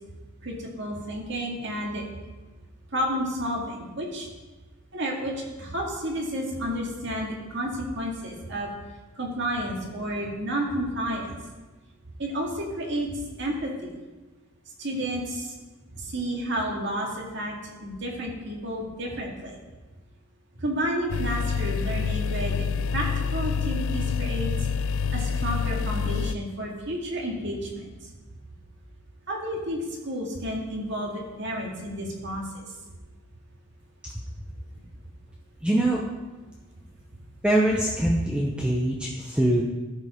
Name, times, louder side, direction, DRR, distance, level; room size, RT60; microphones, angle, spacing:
voice 1, 0.4-2.0 2.9-4.3 4.9-8.7 9.2-11.4 12.2-13.7 14.8-15.5 15.9-17.6 17.8-19.6 20.6-22.7 22.9-24.5 25.1-28.1 29.3-32.7, equal, 55° right, -1 dB, 2.0 m, -31 dB
sound 1, 21.1-26.3, left 5 dB, 70° left, 0.3 m, -27 dB
voice 2, 35.6-36.0 37.4-39.6, right 1 dB, 5° right, -2 dB, 0.6 m, -23 dB
13.0 x 5.3 x 5.0 m, 1.2 s
head